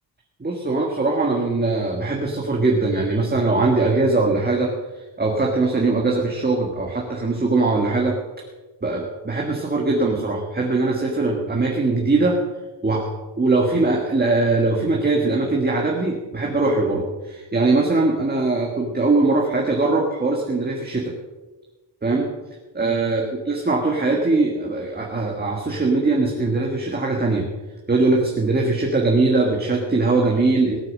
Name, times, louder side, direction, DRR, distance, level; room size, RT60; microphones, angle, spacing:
voice 1, 0.4-4.7 5.2-8.2 8.8-12.4 12.8-13.1 13.4-21.1 22.0-22.3 22.7-27.5 27.9-30.8, right 3 dB, 20° right, -1 dB, 1.6 m, -21 dB
18.0 x 8.9 x 6.3 m, 1.2 s
wide cardioid pair, 165°, 44 cm